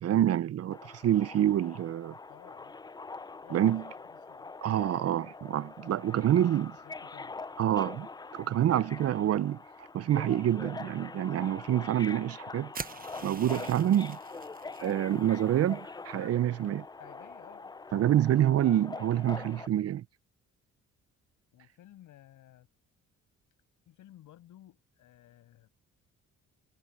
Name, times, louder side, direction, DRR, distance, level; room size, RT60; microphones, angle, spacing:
voice 1, 0.0-2.1 3.5-3.8 4.6-6.8 7.6-8.1 8.3-12.7 13.2-14.2 14.8-16.9 17.9-20.0, right 11 dB, 55° right, 0.6 m, -27 dB
Subway metro underground, 0.7-19.7, left 3 dB, 15° left, 0.5 m, -44 dB
voice 2, 2.3-2.7 3.4-4.5 6.8-7.3 16.9-17.7 21.5-22.7 23.9-25.7, left 13 dB, 80° left, 7.2 m, -55 dB
sound 1, 12.7-14.9, right 5 dB, 30° right, 1.0 m, -43 dB
cardioid pair, 90°, 30 cm